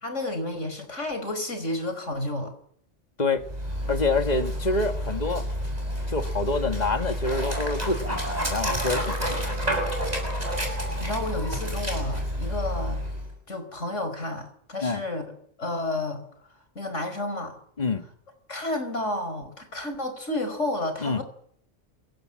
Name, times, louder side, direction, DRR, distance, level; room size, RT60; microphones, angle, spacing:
voice 1, 0.0-2.5 10.5-13.1 13.5-15.3 15.6-16.2 16.8-17.6 18.5-21.2, left 2 dB, 80° left, 5.3 m, -31 dB
Dog, 3.4-13.3, equal, 35° right, 6.8 m, -29 dB
voice 2, 3.9-5.5 6.1-9.6 14.8-15.0 17.8-18.0 21.0-21.2, left 3 dB, 35° left, 1.9 m, -27 dB
27.5 x 17.5 x 7.8 m
omnidirectional pair, 1.2 m